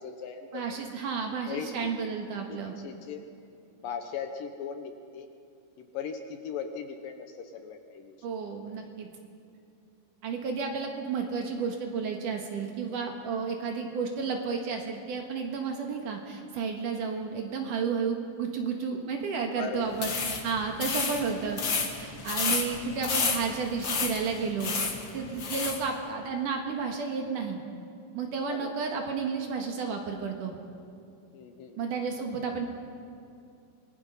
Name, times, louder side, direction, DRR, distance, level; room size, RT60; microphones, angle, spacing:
voice 1, 0.0-0.7 1.5-2.1 2.5-3.2 3.8-5.3 5.8-8.2 13.8-13.9 19.6-19.9 28.5-28.8 31.3-31.8, left 6 dB, 70° left, 6 dB, 2.4 m, -38 dB
voice 2, 0.5-2.7 8.2-9.1 10.2-21.6 22.0-24.7 25.1-27.6 28.1-30.6 31.8-32.6, right 5 dB, 60° right, 2 dB, 2.8 m, -32 dB
sound 1, 19.9-25.8, left 5 dB, 50° left, 1.5 m, -31 dB
26.5 x 19.5 x 5.4 m, 2.5 s
omnidirectional pair, 4.6 m